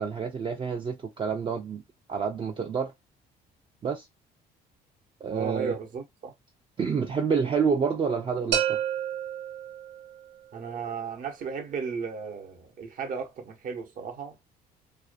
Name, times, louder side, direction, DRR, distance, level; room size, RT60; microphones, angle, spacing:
voice 1, 0.0-1.8 2.1-2.9 3.8-4.1 5.2-5.8 6.8-8.8, right 6 dB, 30° right, 0.4 m, -28 dB
voice 2, 5.3-6.3 10.5-14.4, right 5 dB, 55° right, 0.8 m, -35 dB
sound 1, 8.5-10.4, right 9 dB, 90° right, 0.5 m, -30 dB
2.5 x 2.1 x 2.4 m
cardioid pair, 110°, 17 cm